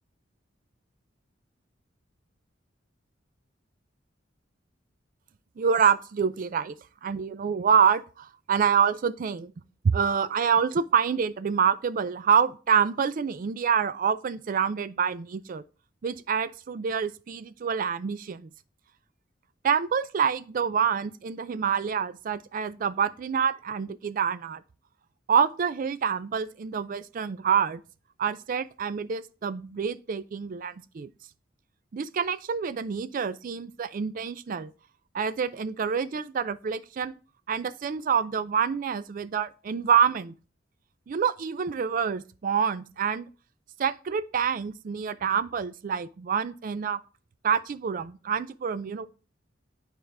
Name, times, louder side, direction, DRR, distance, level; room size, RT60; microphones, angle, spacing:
voice 1, 5.6-6.8 7.0-9.5 9.8-15.6 16.0-18.5 19.6-24.6 25.3-27.8 28.2-31.1 31.9-34.7 35.1-37.1 37.5-40.3 41.1-43.3 43.8-47.0 47.4-49.1, right 7 dB, 45° right, 0.3 m, -27 dB
8.6 x 4.5 x 3.4 m
head